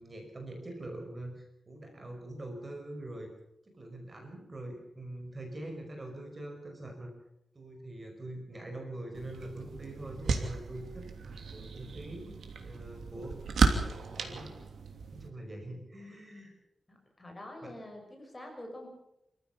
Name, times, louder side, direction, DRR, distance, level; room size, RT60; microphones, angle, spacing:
voice 1, 0.0-3.3 3.6-7.1 7.5-13.4 13.8-14.5 15.1-16.5 17.6-17.8, right 1 dB, 25° right, 3 dB, 5.2 m, -44 dB
sound 1, 9.1-15.3, right 4 dB, 85° right, 3.0 m, -34 dB
voice 2, 16.9-18.9, left 1 dB, 15° left, 2 dB, 6.5 m, -46 dB
27.0 x 15.0 x 7.2 m, 0.82 s
wide cardioid pair, 135°, 0 cm